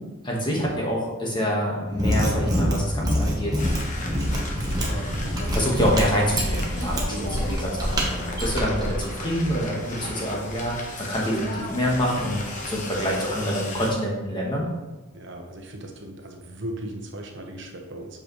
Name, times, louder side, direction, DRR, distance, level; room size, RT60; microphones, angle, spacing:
voice 1, 0.2-3.5 4.9-10.8 11.1-14.7, equal, 20° left, -3 dB, 1.4 m, -26 dB
Mechanisms, 1.9-9.1, equal, 20° right, 1.1 m, -26 dB
sound 1, 3.6-13.9, left 1 dB, 40° left, 1.1 m, -35 dB
voice 2, 7.1-7.5 15.1-18.1, right 1 dB, 60° right, 2 dB, 1.0 m, -37 dB
7.9 x 5.0 x 3.1 m, 1.2 s
head